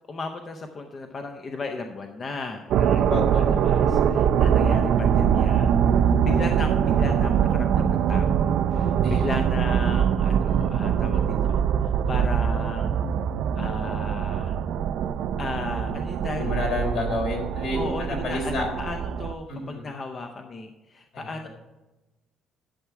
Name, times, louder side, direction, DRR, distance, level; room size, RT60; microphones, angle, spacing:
voice 1, 0.1-5.8 6.2-13.0 13.5-14.6 15.4-16.5 17.7-21.5, left 3 dB, 25° left, 5 dB, 0.6 m, -35 dB
sound 1, 2.7-19.3, right 8 dB, 60° right, 0.5 m, -23 dB
voice 2, 3.1-3.7 9.0-9.3 16.4-18.7 19.5-19.9 21.1-21.5, left 2 dB, 65° left, 1 dB, 3.5 m, -30 dB
11.5 x 7.1 x 4.7 m, 1.1 s
cardioid pair, 180°, 0 cm